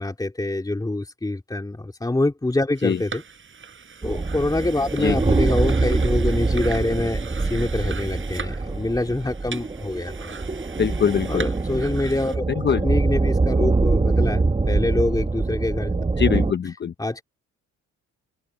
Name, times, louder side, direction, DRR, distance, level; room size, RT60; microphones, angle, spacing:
voice 1, 0.0-3.2 4.0-10.3 11.3-16.1 17.0-17.2, left 2 dB, 10° left, 3.0 m, -25 dB
sound 1, 2.7-12.4, right 6 dB, 40° right, 6.8 m, -39 dB
sound 2, 4.0-16.5, right 3 dB, 20° right, 1.5 m, -24 dB
voice 2, 10.8-11.4 12.6-12.8 16.2-16.9, left 7 dB, 35° left, 0.9 m, -22 dB
open air
cardioid pair, 90°, 30 cm